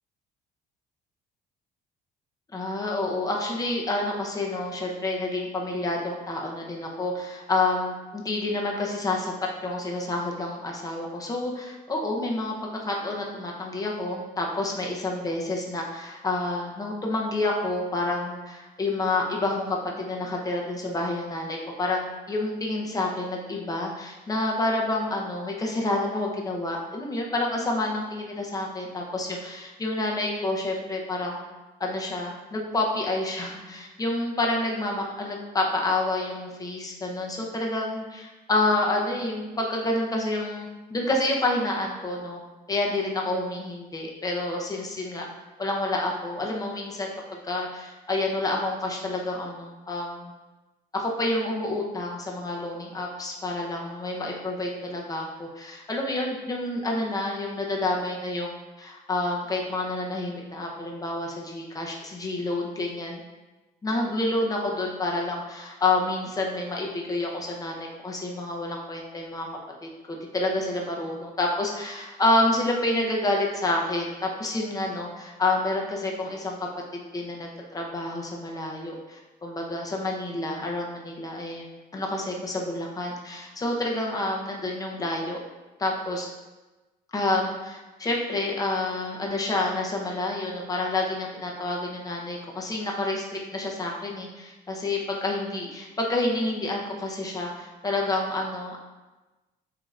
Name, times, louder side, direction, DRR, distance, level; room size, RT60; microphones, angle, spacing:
voice 1, 2.5-9.3 9.6-31.4 31.8-42.4 42.7-45.3 45.6-50.3 50.9-63.2 63.8-69.5 69.8-76.7 77.1-81.7 81.9-85.4 85.8-86.3 87.1-98.8, left 2 dB, 20° left, -1 dB, 0.8 m, -28 dB
7.4 x 2.8 x 2.5 m, 1.1 s
cardioid pair, 110°, 17 cm